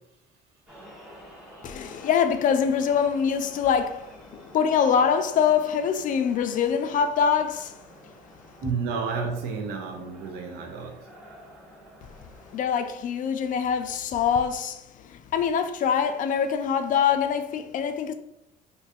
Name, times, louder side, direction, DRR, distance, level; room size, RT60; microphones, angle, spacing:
sound 1, 0.7-12.7, equal, 5° right, 1.2 m, -49 dB
voice 1, 1.6-7.8 12.5-18.1, left 7 dB, 50° left, 0.4 m, -24 dB
voice 2, 8.6-11.0, right 5 dB, 75° right, 0.5 m, -31 dB
2.6 x 2.3 x 4.1 m
cardioid pair, 110°, 17 cm